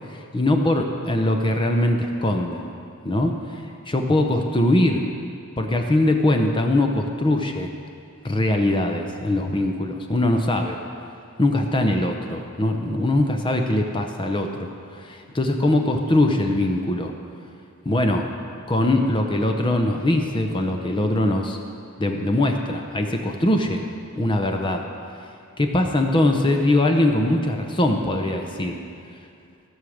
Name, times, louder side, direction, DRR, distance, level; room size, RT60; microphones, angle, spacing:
voice 1, 0.1-2.7 3.0-5.0 5.6-7.7 8.2-10.8 11.4-17.1 17.8-18.3 18.7-21.6 22.0-23.8 24.2-24.9 25.6-28.8, left 1 dB, 25° left, 4 dB, 0.7 m, -22 dB
16.5 x 6.4 x 6.4 m, 2.4 s
head